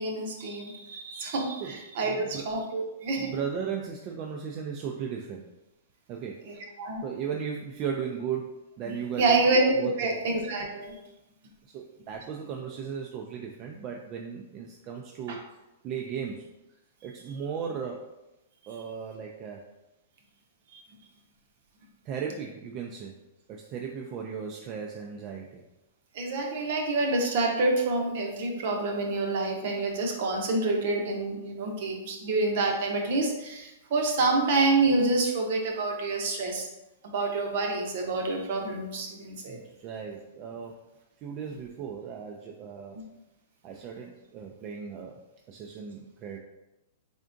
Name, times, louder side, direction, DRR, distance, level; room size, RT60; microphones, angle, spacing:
voice 1, 0.0-3.3 6.5-7.0 9.2-11.0 15.3-15.4 20.7-20.8 26.1-36.7 37.0-39.6, right 3 dB, 50° right, 1 dB, 0.8 m, -27 dB
voice 2, 2.0-2.4 3.2-5.5 6.1-6.4 7.0-9.4 9.8-10.1 11.7-15.4 15.8-16.5 17.0-18.2 18.7-19.6 22.0-23.1 23.5-25.6 39.5-40.8 41.2-43.0 43.6-45.1 45.5-46.4, right 7 dB, 30° right, 1 dB, 0.3 m, -36 dB
3.7 x 3.4 x 2.5 m, 0.95 s
hypercardioid pair, 160°, 0 cm